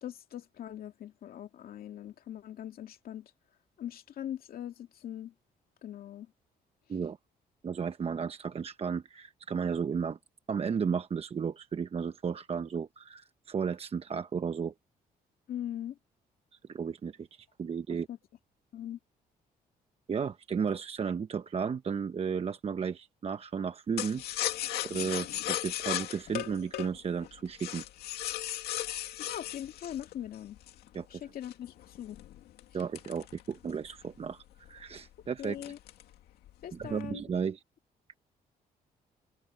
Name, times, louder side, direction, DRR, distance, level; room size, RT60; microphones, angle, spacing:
voice 1, 0.0-3.3 3.8-5.3 5.8-6.3 15.5-16.0 18.1-18.2 18.7-19.0 29.2-30.6 31.1-32.2 35.4-35.8 36.6-37.2, left 11 dB, 70° left, 2.3 m, -41 dB
voice 2, 7.6-10.2 10.5-14.7 16.7-18.1 20.1-24.4 24.8-27.8 30.9-31.1 32.7-35.7 36.7-37.6, right 6 dB, 40° right, 0.9 m, -34 dB
sound 1, 24.0-30.9 31.4-33.9 34.3-34.4 34.7-35.0 35.4-36.1 36.5-37.0, left 13 dB, 90° left, 2.4 m, -36 dB
cardioid pair, 90°, 16 cm